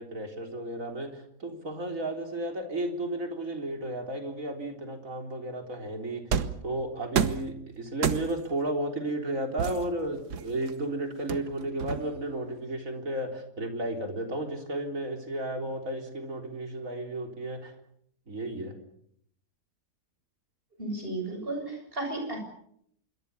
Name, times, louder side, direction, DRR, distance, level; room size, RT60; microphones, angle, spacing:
voice 1, 0.0-6.2 6.6-17.7 18.3-18.7, right 1 dB, 55° right, 4 dB, 4.1 m, -33 dB
sound 1, 6.3-6.7 7.2-7.5 8.0-8.5 9.6-10.7 11.3-12.3, right 7 dB, 80° right, 1.7 m, -29 dB
voice 2, 20.8-22.4, right 2 dB, 35° right, 3 dB, 7.6 m, -34 dB
26.0 x 23.0 x 7.0 m, 0.70 s
omnidirectional pair, 1.7 m